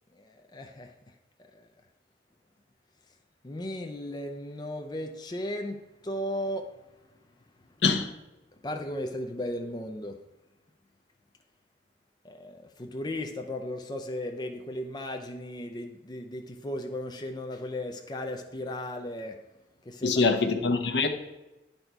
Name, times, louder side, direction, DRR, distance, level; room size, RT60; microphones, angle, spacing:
voice 1, 0.1-0.9 1.5-1.7 3.4-6.7 8.6-10.2 12.2-19.4 19.8-20.3, left 1 dB, 25° left, 0.4 m, -36 dB
voice 2, 20.0-21.1, left 4 dB, 70° left, 0.8 m, -24 dB
10.5 x 4.1 x 4.5 m
head